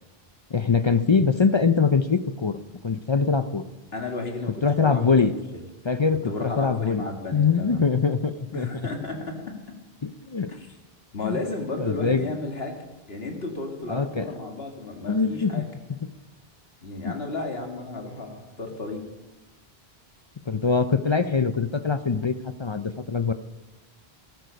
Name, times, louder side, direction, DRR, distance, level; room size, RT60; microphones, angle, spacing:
voice 1, 0.5-2.6 2.8-3.6 4.6-5.3 5.8-7.0 7.3-8.7 10.0-10.5 11.2-11.4 11.8-12.2 13.9-14.3 15.1-15.6 17.0-17.1 20.5-23.3, left 5 dB, 40° left, 10 dB, 0.4 m, -23 dB
voice 2, 3.9-5.3 6.2-7.8 8.5-9.4 10.5-10.7 11.1-12.8 13.1-15.7 16.8-19.0, left 2 dB, 70° left, 3 dB, 2.3 m, -33 dB
14.0 x 12.5 x 5.2 m, 1.1 s
omnidirectional pair, 1.0 m